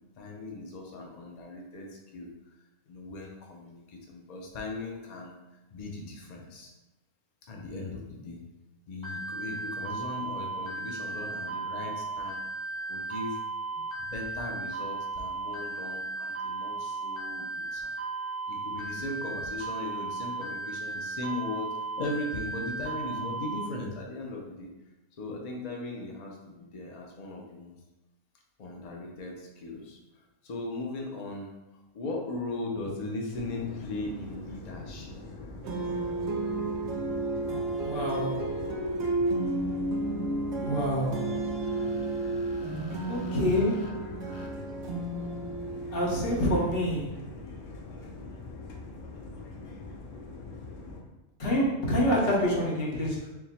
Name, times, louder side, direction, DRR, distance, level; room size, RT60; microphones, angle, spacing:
voice 1, 0.2-2.3 2.9-5.3 5.7-6.7 7.5-8.4 8.9-12.5 12.9-13.4 13.7-18.0 18.5-21.7 22.0-24.7 25.2-27.7 28.6-31.5 31.9-35.1 37.5-37.7 41.3-44.0 44.2-44.5, left 2 dB, 70° left, 0 dB, 0.4 m, -38 dB
sound 1, 9.0-23.7, right 3 dB, 25° left, 0.7 m, -35 dB
sound 2, 33.3-51.0, left 3 dB, 85° left, 1.1 m, -43 dB
sound 3, 35.6-46.8, right 2 dB, 60° right, 0.9 m, -32 dB
voice 2, 37.8-38.6 40.6-41.2 43.1-43.9 45.9-47.1 51.4-53.2, equal, 50° left, -4 dB, 1.1 m, -27 dB
4.3 x 2.1 x 4.1 m, 1.0 s
omnidirectional pair, 1.5 m